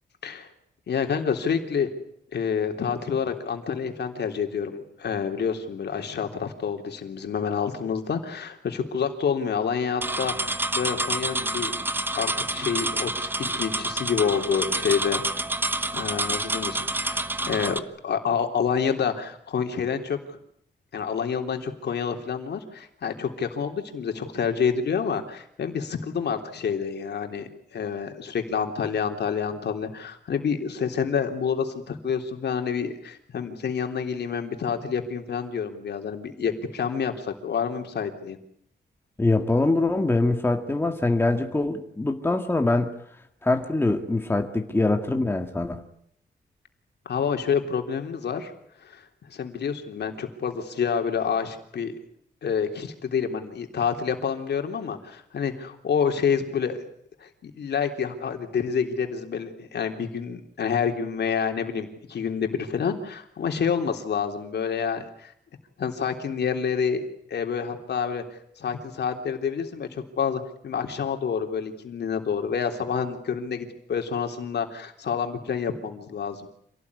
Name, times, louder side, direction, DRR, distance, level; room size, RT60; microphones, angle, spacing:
voice 1, 0.9-1.9 2.3-10.5 10.8-11.8 12.1-15.2 15.9-20.2 20.9-38.4 47.1-48.5 48.8-49.0 49.3-51.9 52.4-56.8 57.2-65.3 65.8-68.2 68.6-76.5, left 6 dB, 70° left, 5 dB, 3.5 m, -28 dB
sound 1, 10.0-17.8, right 2 dB, 10° right, 1.1 m, -28 dB
voice 2, 39.2-42.9 43.4-45.8, left 2 dB, 10° left, 5 dB, 1.9 m, -23 dB
27.0 x 18.0 x 9.8 m, 0.69 s
wide cardioid pair, 150°, 18 cm